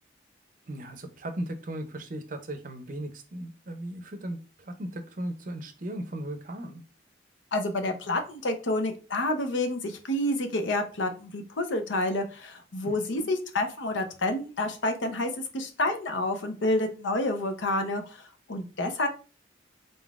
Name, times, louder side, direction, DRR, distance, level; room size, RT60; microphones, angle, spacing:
voice 1, 0.7-6.8 12.8-13.3, right 1 dB, 45° right, 8 dB, 0.5 m, -37 dB
voice 2, 7.5-19.1, left 1 dB, 80° left, 6 dB, 0.7 m, -29 dB
3.8 x 3.8 x 2.4 m, 0.35 s
head